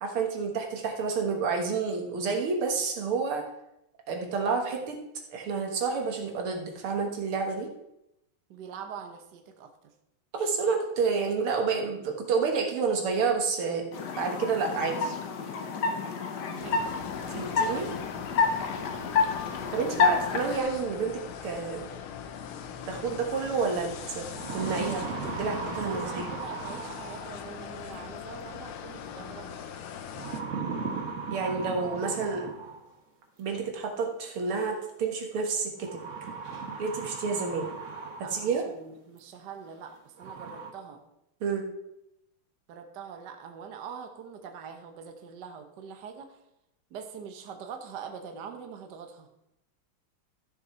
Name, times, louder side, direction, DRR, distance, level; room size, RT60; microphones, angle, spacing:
voice 1, 0.0-3.4 4.1-5.0 5.3-7.7 10.3-13.8 14.2-15.1 17.3-17.9 19.7-21.8 22.9-24.2 24.5-26.3 31.3-32.5 33.4-36.0 36.8-37.7 38.2-38.6 41.4-41.7, right 5 dB, 85° right, 3 dB, 2.4 m, -29 dB
voice 2, 8.5-9.9 16.5-16.9 18.7-18.9 25.8-29.6 38.2-41.0 42.7-46.4 46.9-49.3, right 6 dB, 60° right, 5 dB, 1.5 m, -43 dB
sound 1, 13.9-20.6, left 5 dB, 60° left, 1.5 m, -29 dB
sound 2, 16.6-30.4, left 8 dB, 75° left, 1.7 m, -41 dB
sound 3, 23.6-23.7 24.1-27.5 28.9-29.4 30.1-32.9 34.2-34.3 35.8-38.7 39.2-39.3 39.8-39.9 40.2-40.7, right 5 dB, 40° right, 1.4 m, -37 dB
13.5 x 6.7 x 4.4 m, 0.84 s
omnidirectional pair, 2.3 m